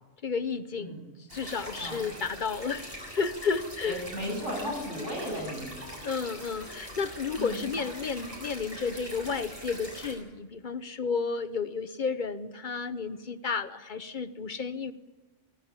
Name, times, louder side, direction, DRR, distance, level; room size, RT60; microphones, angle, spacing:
voice 1, 0.2-1.0 1.3-4.0 6.0-14.9, left 5 dB, 45° left, 12 dB, 0.9 m, -32 dB
sound 1, 1.3-10.1, equal, 50° right, 7.3 m, -43 dB
voice 2, 3.9-5.7 7.4-7.6, equal, 90° right, -1 dB, 8.6 m, -35 dB
25.0 x 17.0 x 7.4 m, 1.2 s
omnidirectional pair, 1.2 m